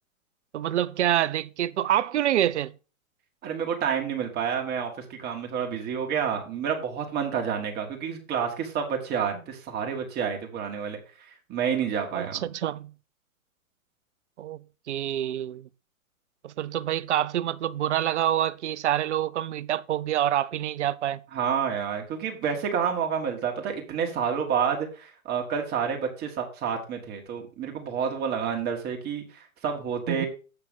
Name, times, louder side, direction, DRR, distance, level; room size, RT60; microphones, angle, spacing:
voice 1, 0.5-2.7 12.1-12.9 14.4-15.7 16.4-21.2 30.1-30.2, right 12 dB, 55° right, 0.6 m, -27 dB
voice 2, 3.4-11.0 11.5-12.4 21.3-30.3, right 7 dB, 25° right, 1.9 m, -29 dB
7.8 x 5.9 x 5.2 m
hypercardioid pair, 120°, 42 cm